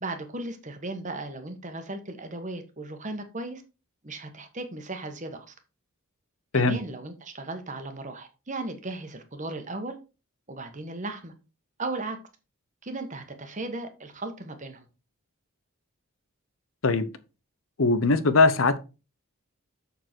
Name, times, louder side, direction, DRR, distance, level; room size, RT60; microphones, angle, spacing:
voice 1, 0.0-3.6 4.0-5.5 6.5-10.0 10.5-11.3 11.8-12.2 12.8-14.9, right 2 dB, 35° right, 1.4 m, -36 dB
voice 2, 17.8-18.8, left 3 dB, 65° left, 0.8 m, -20 dB
6.7 x 6.7 x 4.6 m
head